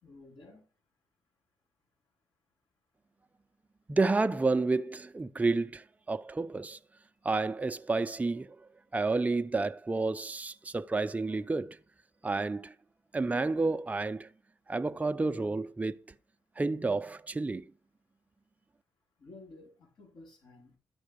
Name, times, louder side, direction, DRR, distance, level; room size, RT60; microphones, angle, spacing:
voice 1, 0.0-0.6 19.2-20.8, left 2 dB, 75° left, 4.4 m, -53 dB
voice 2, 3.9-6.8 7.2-8.6 8.9-11.8 12.2-12.7 13.1-14.3 14.7-16.0 16.6-17.6, right 3 dB, 20° right, 0.5 m, -30 dB
12.5 x 5.4 x 5.1 m
cardioid pair, 80°, 8 cm